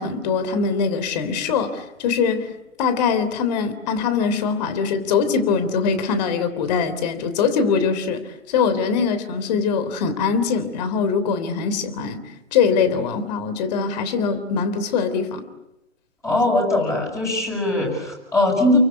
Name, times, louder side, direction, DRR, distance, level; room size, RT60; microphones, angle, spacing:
voice 1, 0.0-12.2 12.5-15.4, left 5 dB, 30° left, 12 dB, 3.4 m, -22 dB
voice 2, 16.2-18.8, left 2 dB, 10° left, -1 dB, 6.9 m, -20 dB
30.0 x 24.0 x 8.3 m, 0.92 s
hypercardioid pair, 145°, 39 cm